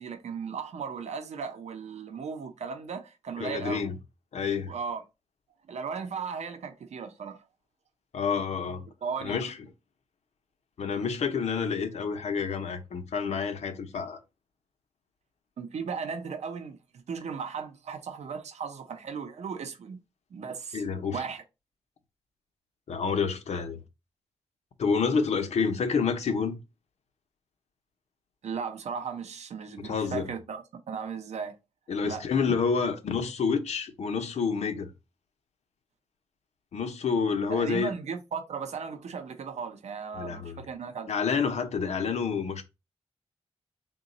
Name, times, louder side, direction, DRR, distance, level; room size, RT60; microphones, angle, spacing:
voice 1, 0.0-3.9 4.7-5.0 5.7-7.4 9.0-9.4 15.6-20.0 20.3-20.8 21.1-21.4 28.4-31.5 32.0-32.3 37.5-41.1, right 6 dB, 85° right, 0.6 m, -36 dB
voice 2, 3.4-4.0 4.3-4.7 8.1-8.9 9.2-9.5 10.8-14.2 20.7-21.2 22.9-23.8 24.8-26.5 29.8-30.3 31.9-34.9 36.7-37.9 40.2-40.6 41.1-42.6, left 5 dB, 80° left, 0.6 m, -28 dB
3.8 x 2.2 x 3.9 m
wide cardioid pair, 145°, 11 cm